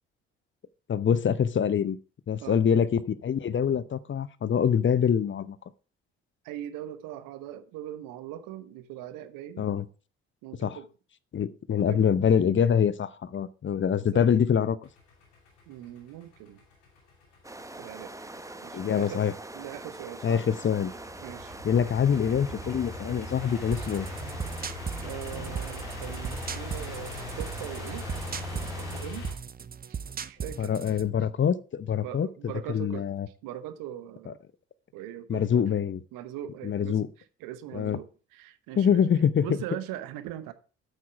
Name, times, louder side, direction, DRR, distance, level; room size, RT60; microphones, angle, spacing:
voice 1, 0.9-2.0 2.3-5.6 9.6-9.9 10.6-10.8 11.3-14.8 18.7-19.3 20.2-20.9 21.6-24.1 30.6-32.3 32.7-33.3 34.3-34.4 35.3-36.0 36.6-37.1 37.7-38.0 38.8-39.5, left 8 dB, 35° left, 0.7 m, -25 dB
voice 2, 6.4-9.7 10.4-10.9 11.7-12.2 14.1-14.2 15.7-16.6 17.8-18.1 18.6-19.2 19.5-20.5 21.2-21.5 23.8-23.9 25.0-28.1 28.5-29.3 29.9-30.7 32.0-33.1 33.4-34.4 34.9-35.7 36.1-37.0 37.4-40.5, right 12 dB, 70° right, 1.0 m, -40 dB
sound 1, 14.8-29.3, left 2 dB, 80° left, 2.9 m, -40 dB
sound 2, 17.4-29.0, right 2 dB, 10° right, 1.0 m, -43 dB
sound 3, 23.7-31.1, right 7 dB, 25° right, 0.6 m, -38 dB
8.6 x 8.1 x 4.6 m
hypercardioid pair, 45°, 35 cm